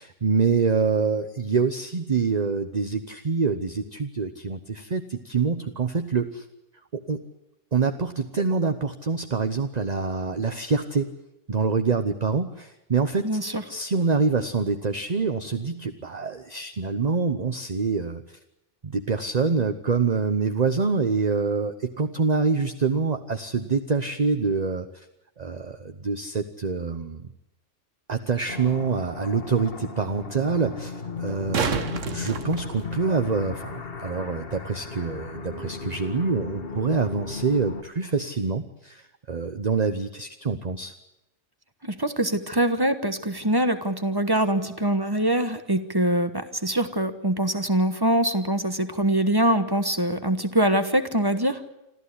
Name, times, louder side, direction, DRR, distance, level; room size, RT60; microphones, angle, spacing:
voice 1, 0.0-6.4 6.9-7.2 7.7-11.1 11.5-13.3 13.7-18.4 18.8-25.1 25.4-27.3 28.1-40.9, right 4 dB, 35° right, 8 dB, 1.0 m, -26 dB
voice 2, 13.2-13.6 41.8-51.6, right 1 dB, 20° right, 10 dB, 1.2 m, -23 dB
sound 1, 28.5-37.8, left 4 dB, 50° left, 1.6 m, -36 dB
sound 2, 31.2-33.3 36.2-36.3, right 6 dB, 85° right, 1.7 m, -30 dB
26.5 x 14.0 x 9.8 m, 0.89 s
omnidirectional pair, 1.3 m